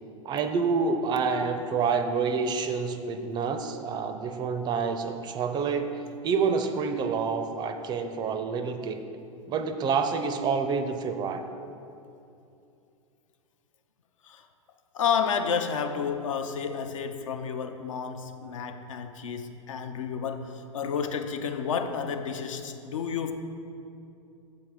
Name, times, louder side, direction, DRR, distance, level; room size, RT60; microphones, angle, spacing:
voice 1, 0.2-5.9 6.2-9.0 9.5-11.4, right 5 dB, 25° right, 8 dB, 0.4 m, -28 dB
voice 2, 14.9-23.3, left 6 dB, 70° left, 7 dB, 0.5 m, -31 dB
7.2 x 4.4 x 4.7 m, 2.7 s
figure-of-eight pair, 95°, 17 cm